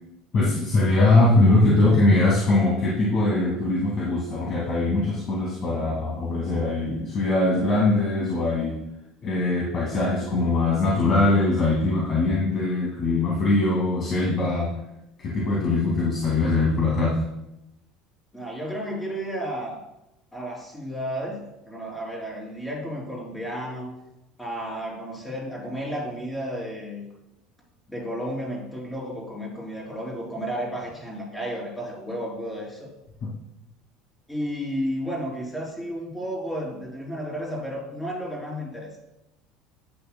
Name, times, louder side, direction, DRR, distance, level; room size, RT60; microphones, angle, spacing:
voice 1, 0.3-8.8 9.2-14.7 15.2-17.1 33.2-33.3, left 2 dB, 40° left, -5 dB, 2.2 m, -21 dB
voice 2, 18.3-19.8 20.3-23.9 24.4-27.0 27.9-32.9 34.3-38.9, equal, 5° left, -3 dB, 3.2 m, -32 dB
11.0 x 8.7 x 2.2 m, 0.89 s
cardioid pair, 135°, 0 cm